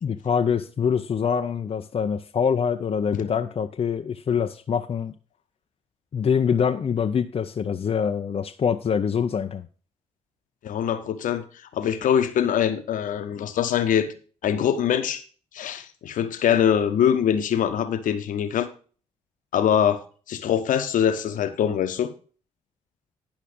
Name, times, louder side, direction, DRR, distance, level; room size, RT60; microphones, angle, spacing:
voice 1, 0.0-5.1 6.1-9.6, left 7 dB, 40° left, 6 dB, 0.6 m, -24 dB
voice 2, 10.6-11.4 11.7-14.1 14.4-15.2 15.5-18.7 19.5-20.0 20.3-22.1, left 9 dB, 60° left, 9 dB, 1.0 m, -23 dB
10.5 x 5.7 x 5.2 m, 0.40 s
hypercardioid pair, 45°, 15 cm